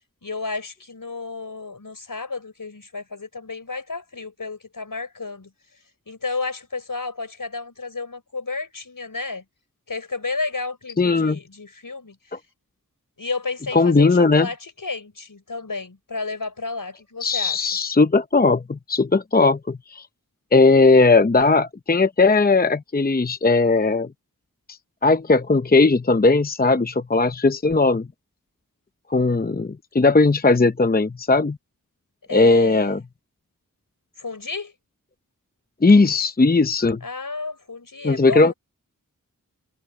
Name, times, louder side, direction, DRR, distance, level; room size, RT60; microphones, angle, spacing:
voice 1, 0.2-5.5 6.1-9.4 9.9-12.2 13.2-17.7 29.5-29.6 32.3-33.0 34.2-34.7 37.0-38.5, left 3 dB, 70° left, 4.8 m, -31 dB
voice 2, 11.0-11.4 12.3-12.4 13.7-14.5 17.2-20.1 20.5-24.1 24.7-28.1 29.1-31.6 32.3-33.0 35.8-37.0 38.0-38.5, left 3 dB, 25° left, 0.7 m, -18 dB
wide cardioid pair, 50°, 34 cm